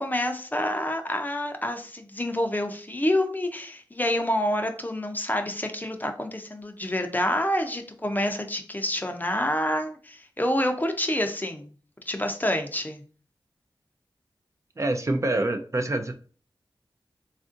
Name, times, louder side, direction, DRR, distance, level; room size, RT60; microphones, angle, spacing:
voice 1, 0.0-11.7 12.1-13.0, left 1 dB, 20° left, 5 dB, 0.5 m, -27 dB
voice 2, 14.8-16.1, right 2 dB, 35° right, 5 dB, 0.4 m, -26 dB
3.4 x 2.5 x 2.5 m, 0.41 s
cardioid pair, 45°, 9 cm